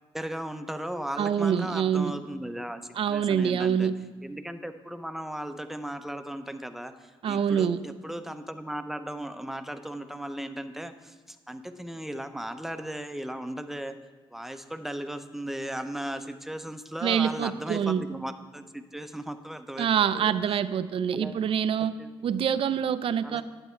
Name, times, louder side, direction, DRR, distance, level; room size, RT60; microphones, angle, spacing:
voice 1, 0.1-2.8 3.1-3.9 4.2-14.0 14.3-19.9 20.1-20.3 21.1-21.4 22.0-22.1 23.2-23.4, right 1 dB, 5° right, 8 dB, 0.7 m, -36 dB
voice 2, 1.2-2.1 3.0-3.9 7.2-7.8 17.0-18.0 19.8-21.9 22.2-23.4, right 8 dB, 60° right, 14 dB, 0.5 m, -25 dB
10.5 x 8.2 x 4.4 m, 1.4 s
cardioid pair, 90°, 10 cm